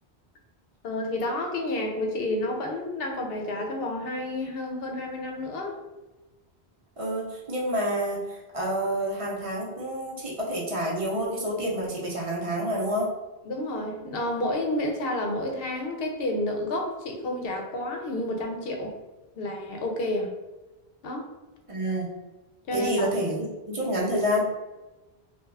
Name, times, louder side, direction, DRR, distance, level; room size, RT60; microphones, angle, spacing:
voice 1, 0.8-5.8 13.4-18.9 19.4-20.3 21.0-21.3 22.7-23.1, left 1 dB, 70° left, 2 dB, 0.8 m, -30 dB
voice 2, 7.0-13.1 21.7-22.1 22.7-24.4, equal, 35° right, -4 dB, 0.7 m, -28 dB
2.3 x 2.3 x 3.2 m, 1.1 s
omnidirectional pair, 1.0 m